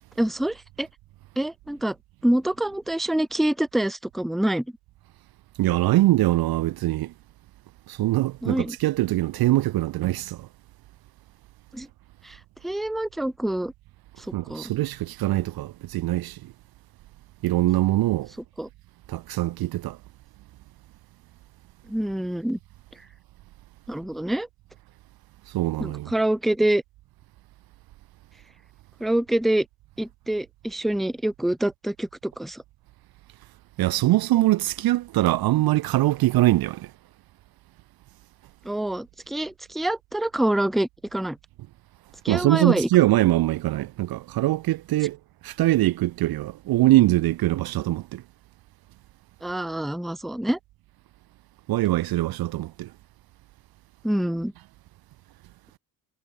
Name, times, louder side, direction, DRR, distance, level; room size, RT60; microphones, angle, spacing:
voice 1, 0.2-0.9 1.4-2.0 2.2-4.6 8.4-8.8 11.7-11.9 12.2-12.4 12.6-13.7 14.5-14.7 18.6-18.7 21.9-22.6 23.9-24.5 25.8-26.8 29.0-29.7 30.0-32.6 38.6-41.4 42.2-42.9 49.4-50.6 54.0-54.5, right 1 dB, ahead, 0.6 m, -26 dB
voice 2, 5.6-7.1 7.9-10.5 14.3-16.4 17.4-18.3 19.1-20.0 25.5-26.1 33.8-36.9 42.3-45.2 45.4-48.2 51.7-52.9, right 16 dB, 55° right, 0.6 m, -22 dB
hypercardioid pair, 55°, 45 cm